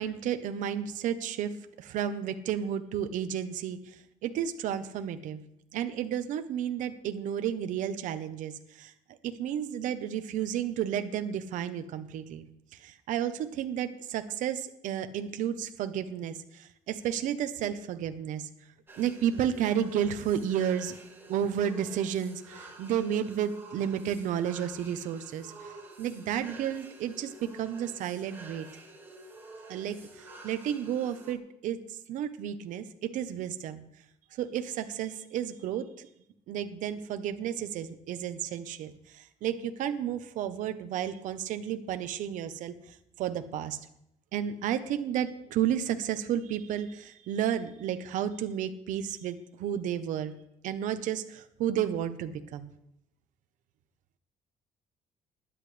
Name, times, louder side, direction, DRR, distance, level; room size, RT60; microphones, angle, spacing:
voice 1, 0.0-5.4 5.7-8.9 9.2-18.5 19.0-21.0 21.3-28.7 29.7-33.8 34.3-36.1 36.5-43.8 44.3-50.4 50.6-52.7, right 9 dB, 80° right, 9 dB, 1.0 m, -32 dB
sound 1, 18.9-31.3, right 2 dB, 15° right, 2.9 m, -49 dB
20.5 x 10.5 x 3.4 m, 0.77 s
cardioid pair, 120°, 13 cm